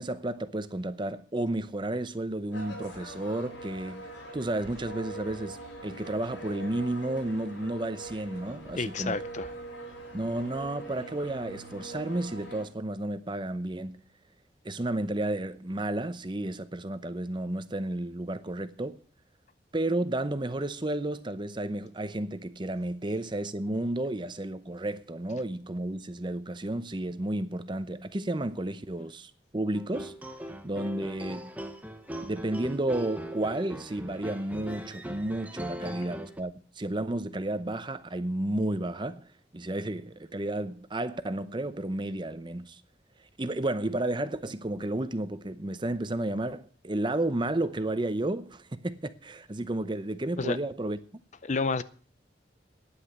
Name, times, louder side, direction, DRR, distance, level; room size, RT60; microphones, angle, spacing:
voice 1, 0.0-4.1 4.3-5.6 5.8-9.2 10.1-14.0 14.6-19.0 19.7-30.2 30.6-31.5 32.2-39.3 39.5-42.8 43.4-51.0, right 1 dB, 25° right, 0.7 m, -32 dB
sound 1, 2.5-12.6, right 1 dB, 85° left, 5.5 m, -43 dB
voice 2, 8.7-9.5 50.4-50.6 51.4-51.8, left 4 dB, 40° left, 0.6 m, -30 dB
sound 2, 29.7-36.4, right 1 dB, 10° right, 1.0 m, -40 dB
10.0 x 9.0 x 8.0 m
head